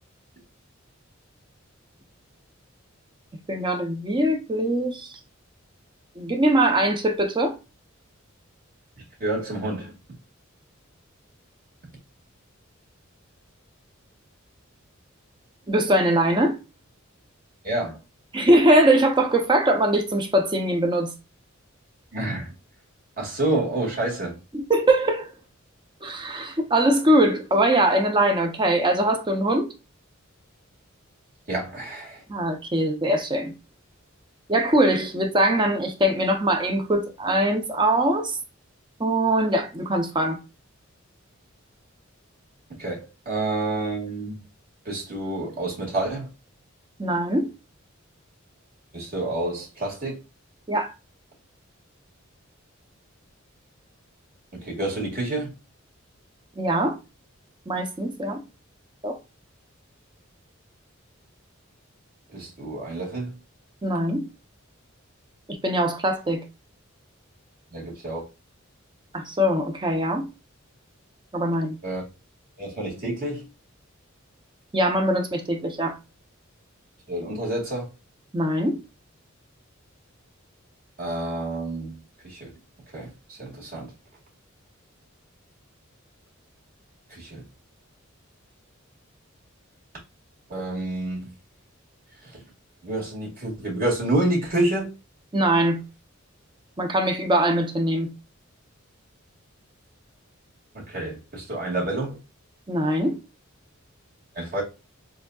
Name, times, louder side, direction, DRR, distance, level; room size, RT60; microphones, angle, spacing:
voice 1, 3.5-5.1 6.2-7.6 15.7-16.6 18.3-21.1 24.5-25.3 26.0-29.7 32.3-33.5 34.5-38.4 39.0-40.4 47.0-47.5 50.7-50.9 56.6-56.9 57.7-58.4 59.0-59.2 63.8-64.2 65.5-66.4 69.1-70.3 71.3-71.8 74.7-76.0 78.3-78.8 95.3-95.8 96.8-98.1 102.7-103.2, right 1 dB, 25° right, 0.7 m, -22 dB
voice 2, 9.2-10.0 17.6-18.0 22.1-22.5 23.2-24.4 31.5-32.2 42.8-44.4 44.9-46.3 48.9-50.2 54.5-55.5 62.3-63.3 67.7-68.3 71.8-72.0 72.6-73.5 77.1-77.9 81.0-82.0 82.2-82.5 82.9-83.9 87.1-87.5 90.5-91.3 92.2-92.4 92.8-94.9 100.7-102.2 104.3-104.6, right 2 dB, 45° right, 2.1 m, -28 dB
6.8 x 2.7 x 2.4 m
head